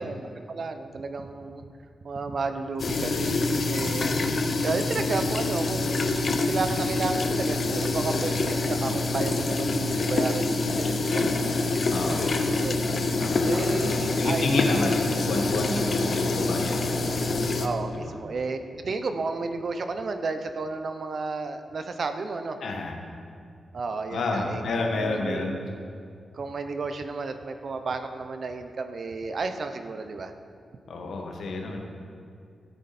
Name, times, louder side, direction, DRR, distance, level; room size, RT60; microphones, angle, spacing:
voice 1, 0.0-1.6 2.0-15.3 15.7-16.1 17.6-22.6 23.7-24.6 25.0-25.7 26.3-30.3, right 4 dB, 60° right, 8 dB, 0.8 m, -33 dB
sound 1, 2.8-17.7, left 2 dB, 60° left, 0.9 m, -26 dB
voice 2, 11.9-12.4 13.2-16.8 17.9-18.1 22.6-23.0 24.1-25.6 30.9-31.8, left 3 dB, 85° left, 1 dB, 1.5 m, -30 dB
13.5 x 8.3 x 4.4 m, 2.4 s
cardioid pair, 70°, 0 cm